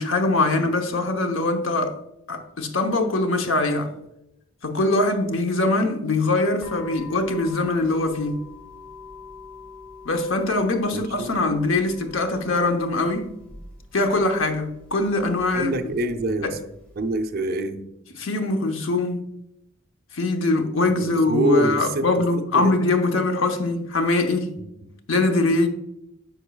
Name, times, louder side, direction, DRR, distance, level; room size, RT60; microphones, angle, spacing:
voice 1, 0.0-2.0 2.3-3.9 4.6-8.4 10.0-13.3 13.9-15.7 16.4-16.5 18.2-19.3 20.1-24.5 25.1-25.7, left 2 dB, 70° left, 0.9 m, -22 dB
sound 1, 6.6-17.2, left 4 dB, 5° left, 2.5 m, -45 dB
voice 2, 10.9-11.3 15.5-16.6 16.9-17.8 21.0-22.1 22.5-22.7 24.6-24.9, right 1 dB, 50° right, 0.6 m, -25 dB
9.0 x 5.4 x 2.3 m
head